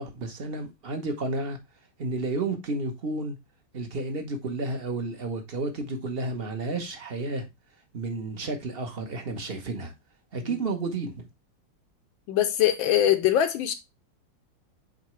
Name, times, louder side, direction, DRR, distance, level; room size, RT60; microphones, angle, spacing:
voice 1, 0.0-1.6 2.0-3.4 3.7-7.5 7.9-9.9 10.3-11.2, right 3 dB, 40° right, 0.9 m, -31 dB
voice 2, 12.3-13.7, left 11 dB, 75° left, 1.4 m, -22 dB
8.3 x 3.7 x 3.1 m
omnidirectional pair, 2.3 m